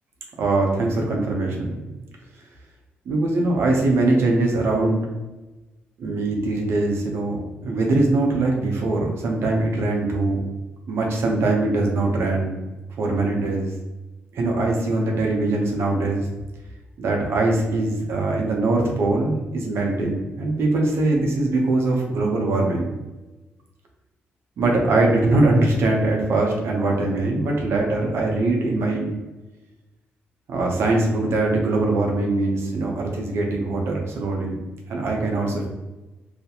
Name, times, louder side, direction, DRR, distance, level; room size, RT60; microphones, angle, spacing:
voice 1, 0.4-1.8 3.1-5.1 6.0-7.4 7.6-10.4 10.9-12.6 13.0-13.7 14.3-16.3 17.0-22.9 24.6-29.1 30.5-34.6 34.9-35.7, right 2 dB, 70° right, 0 dB, 0.7 m, -22 dB
2.4 x 2.1 x 2.8 m, 1.1 s
cardioid pair, 70°, 5 cm